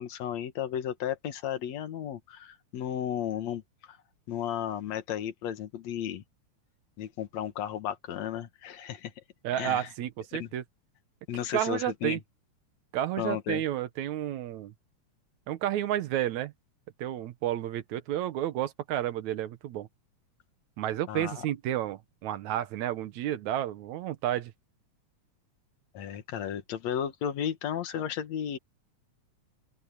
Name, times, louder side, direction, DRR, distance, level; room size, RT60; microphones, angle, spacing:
voice 1, 0.0-4.0 4.3-6.2 7.0-9.1 9.6-9.9 10.3-10.5 11.3-12.2 13.2-13.6 21.1-21.4 25.9-28.6, left 9 dB, 70° left, 2.6 m, -34 dB
voice 2, 9.4-10.6 11.5-12.2 12.9-14.7 15.5-16.5 17.0-19.9 20.8-24.5, right 12 dB, 75° right, 2.3 m, -31 dB
open air
omnidirectional pair, 3.4 m